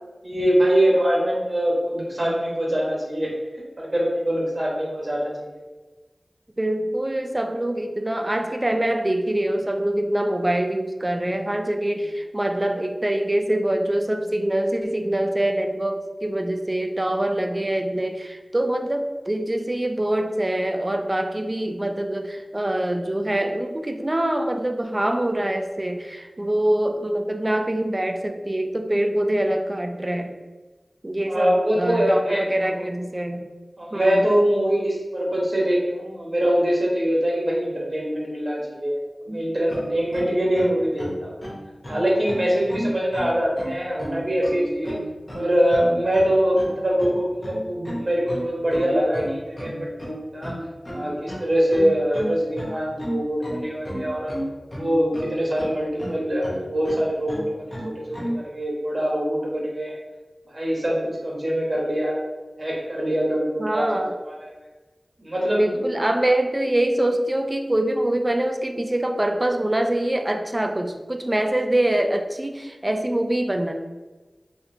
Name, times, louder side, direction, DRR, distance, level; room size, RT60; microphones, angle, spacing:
voice 1, 0.2-3.3 3.8-5.6 31.3-32.8 33.8-41.4 41.9-44.9 45.3-50.5 50.9-54.3 54.7-60.0 60.5-62.2 62.6-64.5 65.2-65.8, equal, 50° right, -4 dB, 1.0 m, -23 dB
voice 2, 6.6-30.4 31.0-33.5 33.9-34.3 39.3-39.5 63.6-64.1 65.5-73.7, right 1 dB, 30° right, 5 dB, 0.4 m, -24 dB
sound 1, 39.7-58.4, equal, 35° left, 0.9 m, -33 dB
4.1 x 2.7 x 2.7 m, 1.2 s
wide cardioid pair, 45°, 0 cm